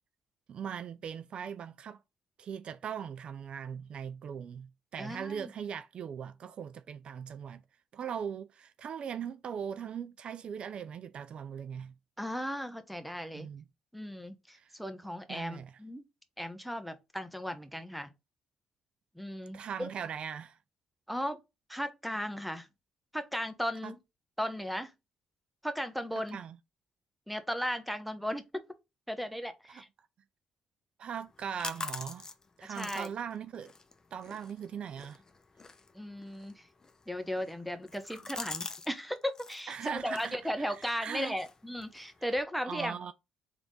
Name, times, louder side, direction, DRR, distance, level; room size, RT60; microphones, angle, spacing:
voice 1, 0.5-2.0 2.4-7.6 7.9-11.9 13.3-13.6 14.5-14.7 15.3-15.7 19.5-20.6 23.8-23.9 26.2-26.6 29.7-29.8 31.0-32.3 32.6-33.7 34.1-35.2 39.7-41.3 42.3-42.4 42.6-43.1, right 7 dB, 60° right, 0.4 m, -40 dB
voice 2, 5.0-5.5 12.2-13.5 13.9-16.0 16.4-18.1 19.1-19.9 21.1-21.4 21.7-22.7 23.1-24.0 24.4-24.9 25.6-26.4 27.3-28.5 29.1-29.9 32.7-33.1 35.9-36.7 37.1-43.0, equal, ahead, 1.0 m, -36 dB
sound 1, 31.2-38.9 39.2-39.6 40.1-42.4, left 3 dB, 30° left, 0.8 m, -46 dB
3.6 x 3.5 x 3.9 m
supercardioid pair, 60°, 2 cm